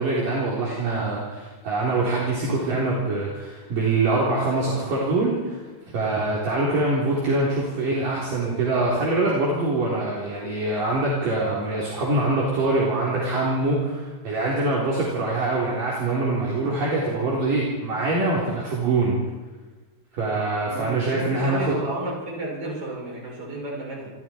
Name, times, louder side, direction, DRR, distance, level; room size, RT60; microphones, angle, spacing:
voice 1, 0.0-5.6 5.9-19.2 20.2-21.8, right 2 dB, 55° right, -5 dB, 5.3 m, -24 dB
voice 2, 20.6-24.1, right 1 dB, 30° right, -3 dB, 7.8 m, -32 dB
27.5 x 25.0 x 4.6 m, 1.3 s
omnidirectional pair, 4.9 m